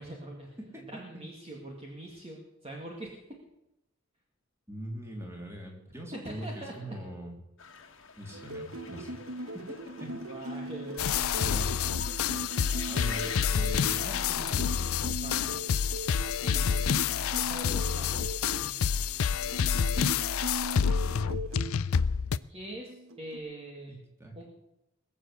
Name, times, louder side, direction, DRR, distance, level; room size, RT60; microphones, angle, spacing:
voice 1, 0.0-0.6 0.9-3.1 6.1-7.0 10.1-11.1 15.1-15.6 16.4-19.6 22.5-23.9 24.4-24.5, right 1 dB, 30° right, -1 dB, 2.1 m, -44 dB
voice 2, 4.7-7.4 8.2-9.2 9.5-9.6 10.0-10.1 11.3-11.7 12.9-15.0 23.9-24.5, equal, 15° right, 0 dB, 3.4 m, -41 dB
sound 1, 7.6-13.6, left 6 dB, 65° left, 1.7 m, -45 dB
sound 2, 8.3-18.6 19.4-21.7 22.9-23.4, right 1 dB, 80° right, 1.5 m, -40 dB
sound 3, 11.0-22.4, left 7 dB, 85° left, 0.5 m, -28 dB
21.0 x 7.3 x 8.1 m, 0.86 s
head